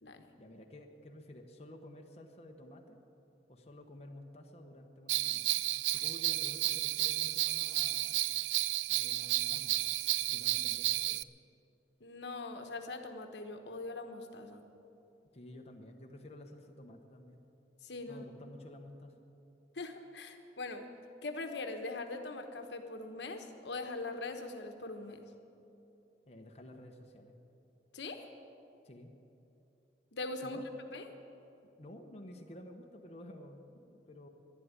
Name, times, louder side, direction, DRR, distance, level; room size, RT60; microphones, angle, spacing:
voice 1, 0.4-3.0 3.5-5.6 5.9-8.2 8.9-9.8 10.2-11.2 15.3-17.4 18.1-19.2 26.3-27.4 28.8-29.1 30.4-30.7 31.8-34.3, left 1 dB, 35° left, 2 dB, 1.0 m, -52 dB
Bell, 5.1-11.2, right 16 dB, 90° right, 0.3 m, -32 dB
voice 2, 12.0-14.6 17.8-18.2 19.7-20.9 21.2-25.2 27.9-28.3 30.1-30.6 30.9-31.1, left 3 dB, 80° left, 5 dB, 1.1 m, -42 dB
11.5 x 11.0 x 9.6 m, 2.8 s
head